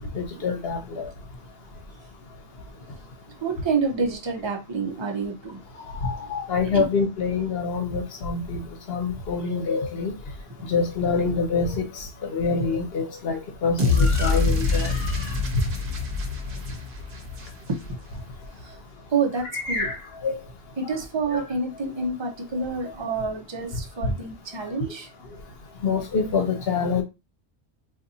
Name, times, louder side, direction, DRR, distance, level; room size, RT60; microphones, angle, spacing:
voice 1, 0.1-1.0 6.0-8.6 8.9-10.1 10.7-15.2 19.5-20.0 20.2-20.4 21.3-21.4 25.8-27.0, left 4 dB, 70° left, 1.0 m, -26 dB
voice 2, 3.3-5.6 6.7-6.9 17.7-18.0 18.5-18.8 19.1-19.9 20.8-25.1, right 4 dB, 30° right, 0.6 m, -28 dB
sound 1, 13.8-18.0, left 3 dB, 60° right, 1.0 m, -25 dB
4.0 x 2.4 x 2.7 m
omnidirectional pair, 1.1 m